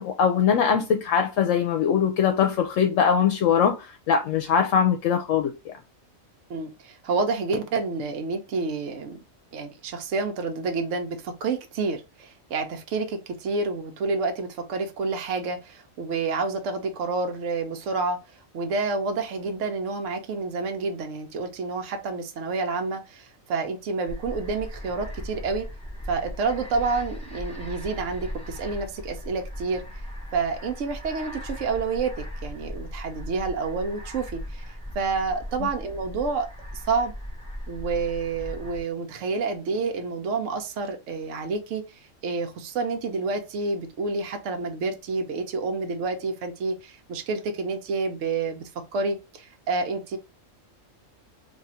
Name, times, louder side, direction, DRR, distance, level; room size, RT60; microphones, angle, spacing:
voice 1, 0.0-5.8 35.6-35.7, left 7 dB, 75° left, 0.9 m, -22 dB
voice 2, 6.5-9.2 9.5-18.2 18.5-25.7 26.1-29.8 30.3-34.6 34.9-36.5 36.9-37.1 37.7-50.2, right 4 dB, 70° right, 1.0 m, -29 dB
sound 1, 24.1-38.8, equal, 5° left, 0.8 m, -38 dB
2.7 x 2.5 x 4.2 m
omnidirectional pair, 1.4 m